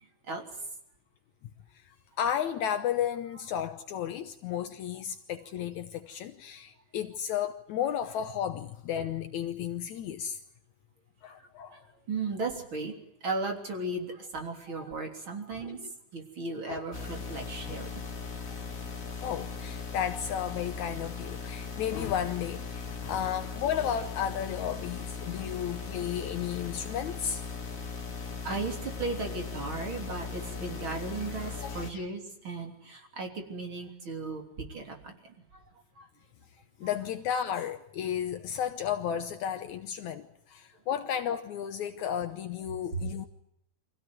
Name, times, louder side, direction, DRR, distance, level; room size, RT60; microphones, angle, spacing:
voice 1, 2.2-10.4 11.2-11.8 15.5-15.9 16.7-16.9 17.6-17.7 19.2-27.4 30.6-30.7 31.6-32.1 36.8-43.3, left 9 dB, 70° left, 2.3 m, -33 dB
voice 2, 12.1-12.9 13.2-15.8 16.1-18.0 28.4-34.4 34.7-35.1 36.0-36.1, right 3 dB, 40° right, 4.1 m, -36 dB
sound 1, 16.9-31.9, left 5 dB, 30° left, 2.3 m, -39 dB
25.0 x 16.5 x 9.4 m
omnidirectional pair, 3.6 m